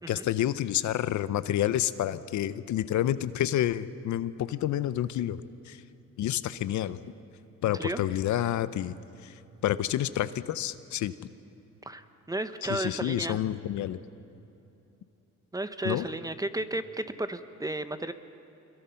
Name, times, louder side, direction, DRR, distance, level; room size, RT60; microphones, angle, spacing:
voice 1, 0.1-5.8 6.2-7.0 7.6-9.0 9.2-9.3 9.6-11.2 12.7-14.0 15.8-16.0, left 12 dB, 75° left, 14 dB, 0.7 m, -29 dB
voice 2, 11.8-13.4 15.5-18.1, right 1 dB, 10° right, 10 dB, 0.9 m, -33 dB
26.0 x 22.0 x 5.8 m, 2.9 s
cardioid pair, 90°, 30 cm